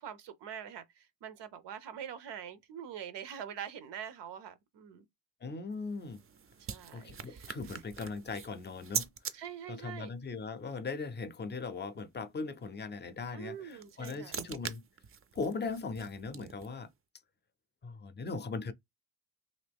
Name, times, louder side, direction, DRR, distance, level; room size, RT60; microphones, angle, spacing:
voice 1, 0.0-5.1 6.6-7.8 9.3-10.1 13.3-14.4, right 9 dB, 85° right, 0.6 m, -44 dB
voice 2, 5.4-6.2 6.9-9.1 9.7-14.8 15.3-16.9 17.8-18.7, left 4 dB, 25° left, 0.5 m, -39 dB
sound 1, 5.7-9.3 13.5-16.8, right 7 dB, 35° right, 0.4 m, -42 dB
2.9 x 2.7 x 3.4 m
cardioid pair, 100°, 41 cm